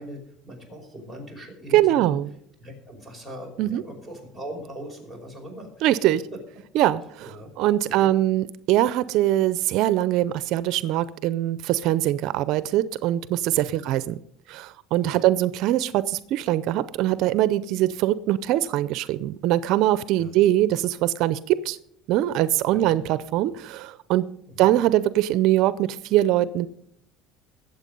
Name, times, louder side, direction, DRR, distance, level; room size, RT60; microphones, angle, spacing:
voice 1, 0.0-2.2 2.6-5.9 7.2-7.5 7.8-8.1 13.5-13.8 15.0-15.2 20.2-20.3 22.7-23.0 24.5-24.7, equal, 5° left, 2 dB, 5.2 m, -40 dB
voice 2, 1.7-2.3 3.6-3.8 5.8-6.2 6.7-7.3 7.6-14.2 14.5-21.8 22.1-24.2 24.6-26.7, right 14 dB, 65° right, 16 dB, 0.5 m, -22 dB
21.0 x 7.9 x 5.3 m, 0.72 s
cardioid pair, 130°, 0 cm